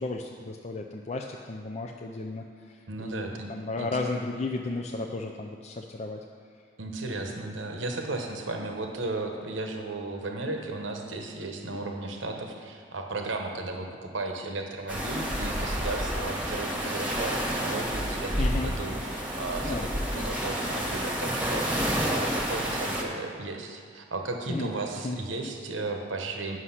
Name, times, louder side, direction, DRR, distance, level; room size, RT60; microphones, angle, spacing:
voice 1, 0.0-6.2 7.0-7.2 18.4-18.7 19.6-19.9 24.5-24.7 25.0-25.2, left 3 dB, 35° left, 2 dB, 0.4 m, -34 dB
voice 2, 2.9-3.5 3.8-3.9 6.8-26.6, right 2 dB, 85° right, 3 dB, 1.0 m, -35 dB
sound 1, 14.9-23.0, equal, 10° right, 1.2 m, -29 dB
9.7 x 6.3 x 5.7 m, 2.2 s
head